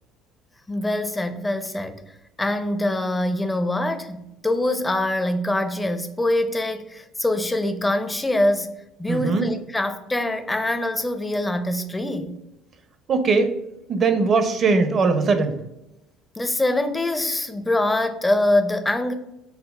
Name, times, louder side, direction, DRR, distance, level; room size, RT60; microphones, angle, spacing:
voice 1, 0.7-2.0 2.4-8.7 9.0-12.4 16.4-19.1, left 1 dB, 15° left, 0.4 m, -24 dB
voice 2, 9.1-9.5 13.1-13.5 13.9-15.5, right 4 dB, 45° right, 0.5 m, -20 dB
5.7 x 2.0 x 2.2 m
supercardioid pair, 90°, 0 cm